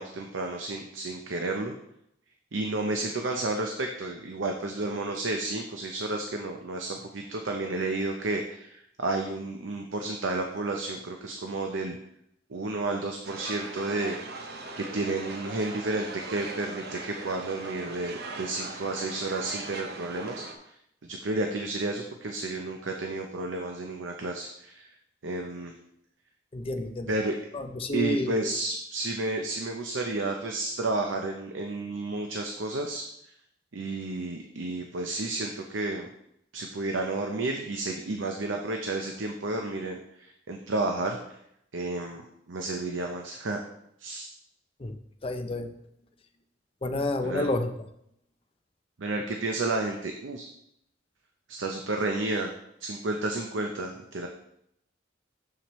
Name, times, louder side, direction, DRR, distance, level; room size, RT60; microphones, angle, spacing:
voice 1, 0.0-1.8 2.5-12.0 12.5-14.2 14.8-20.5 21.0-24.9 25.2-25.7 27.1-27.4 27.9-33.0 33.7-36.1 36.5-41.4 41.7-42.2 42.5-43.6 44.0-44.3 47.2-47.4 49.0-50.5 51.5-52.5 52.8-54.3, right 2 dB, 85° right, 3 dB, 0.7 m, -31 dB
sound 1, 13.2-20.6, right 3 dB, 60° right, 0.9 m, -40 dB
voice 2, 26.5-27.1 27.5-28.5 44.8-45.7 46.8-47.7, left 1 dB, 30° left, 7 dB, 0.6 m, -30 dB
7.3 x 7.0 x 3.1 m, 0.76 s
head